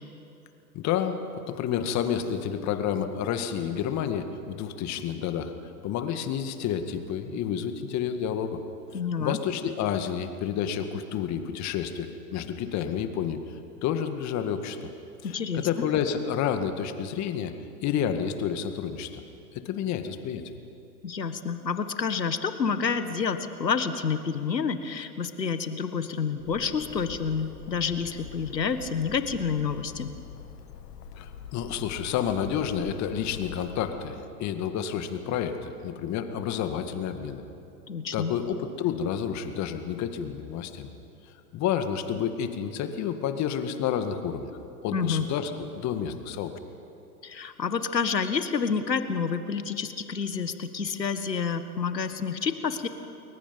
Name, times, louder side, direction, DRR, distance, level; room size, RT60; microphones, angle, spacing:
voice 1, 0.7-5.5 5.8-8.6 9.1-14.9 15.2-17.5 17.8-19.2 19.5-20.4 31.1-37.4 38.1-40.9 41.5-44.5 44.8-46.5, left 8 dB, 35° left, 8 dB, 2.0 m, -30 dB
voice 2, 8.9-9.4 15.2-15.7 21.0-30.1 37.9-38.3 44.9-45.2 47.2-52.9, left 6 dB, 90° left, 10 dB, 1.7 m, -29 dB
Bird, 26.4-34.0, left 6 dB, 70° left, 1.7 m, -44 dB
29.5 x 21.5 x 5.4 m, 2.8 s
hypercardioid pair, 105°, 49 cm